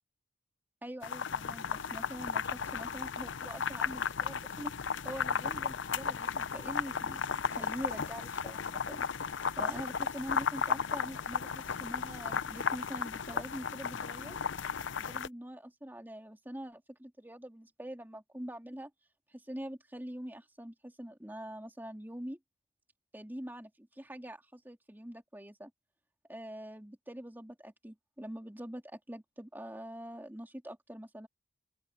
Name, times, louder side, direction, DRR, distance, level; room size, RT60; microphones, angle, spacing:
voice 1, 0.8-4.7 5.0-14.4 15.0-18.9 19.3-22.4 23.1-25.7 26.3-31.3, equal, 10° right, 2.7 m, -44 dB
sound 1, 1.0-15.3, left 6 dB, 80° left, 0.7 m, -35 dB
open air
head